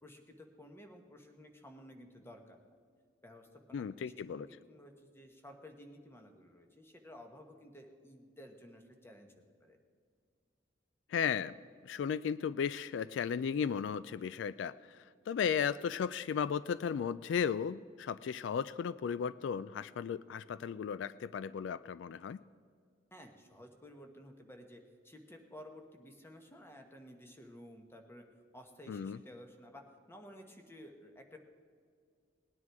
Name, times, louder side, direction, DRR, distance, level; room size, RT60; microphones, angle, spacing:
voice 1, 0.0-2.6 3.2-9.8 23.1-28.3 28.5-31.4, equal, 15° left, 4 dB, 1.2 m, -54 dB
voice 2, 3.7-4.5 11.1-11.6 11.8-15.0 15.3-22.4 28.9-29.2, left 7 dB, 75° left, 17 dB, 0.3 m, -35 dB
19.0 x 9.8 x 4.7 m, 2.2 s
head